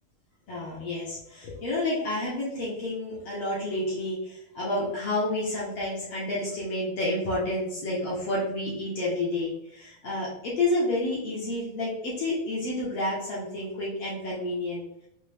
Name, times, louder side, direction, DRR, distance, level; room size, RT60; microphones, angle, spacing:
voice 1, 0.5-14.9, left 1 dB, 65° left, -7 dB, 1.5 m, -30 dB
5.8 x 2.5 x 3.4 m, 0.77 s
omnidirectional pair, 4.2 m